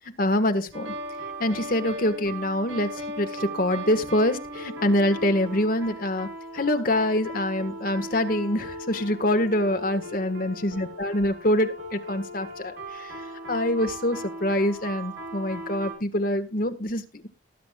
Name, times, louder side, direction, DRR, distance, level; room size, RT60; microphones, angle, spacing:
voice 1, 0.2-0.9 1.4-13.1 13.5-17.3, left 1 dB, 45° left, 7 dB, 1.5 m, -25 dB
sound 1, 0.7-15.9, right 1 dB, 70° right, 5.0 m, -38 dB
19.5 x 9.3 x 2.4 m, 0.26 s
head